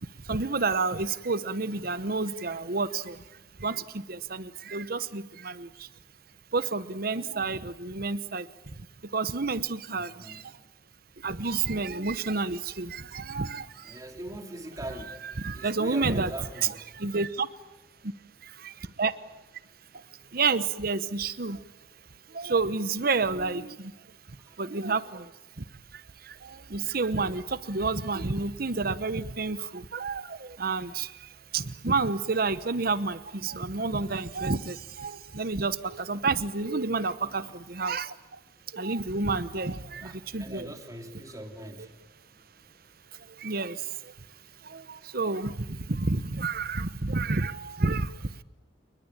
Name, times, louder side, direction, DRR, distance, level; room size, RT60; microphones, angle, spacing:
voice 1, 0.0-3.2 3.6-5.9 6.5-8.9 9.1-10.5 11.2-14.0 15.2-16.3 16.9-17.5 18.0-18.1 18.4-19.1 19.9-20.0 20.3-21.6 22.3-23.9 24.3-25.3 25.6-25.7 25.9-38.4 38.7-40.7 43.1-44.1 44.6-48.4, right 4 dB, 55° right, 1.1 m, -30 dB
voice 2, 9.9-10.6 13.8-16.9 24.4-24.6 37.3-37.6 40.0-42.0, right 1 dB, 20° right, 3.1 m, -42 dB
29.0 x 21.0 x 9.0 m
head